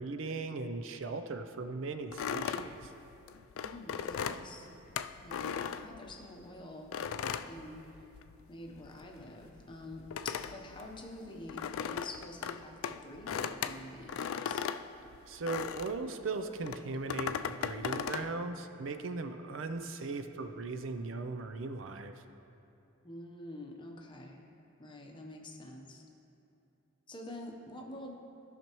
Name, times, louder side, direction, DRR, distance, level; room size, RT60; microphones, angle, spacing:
voice 1, 0.0-2.9 15.3-22.1, right 3 dB, 65° right, 8 dB, 0.5 m, -38 dB
sound 1, 2.1-6.4 6.9-8.4 8.7-16.0 16.6-18.3, left 7 dB, 80° left, 0.3 m, -37 dB
voice 2, 3.5-4.7 5.2-7.0 7.4-8.1 8.5-14.7 23.0-24.4 24.8-26.1 27.1-28.1, left 1 dB, 25° left, 1 dB, 0.8 m, -47 dB
16.0 x 5.8 x 3.0 m, 2.8 s
head